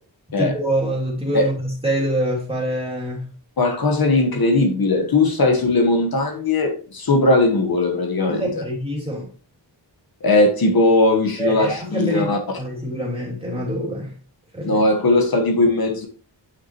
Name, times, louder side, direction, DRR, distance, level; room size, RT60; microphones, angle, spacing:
voice 1, 0.4-3.3 8.3-9.3 11.4-12.3 12.6-14.1 14.5-14.8, right 1 dB, 15° right, 2.7 m, -25 dB
voice 2, 3.6-8.6 10.2-12.4 14.6-16.1, left 2 dB, 55° left, 1.3 m, -18 dB
9.2 x 5.9 x 3.0 m
wide cardioid pair, 150°, 43 cm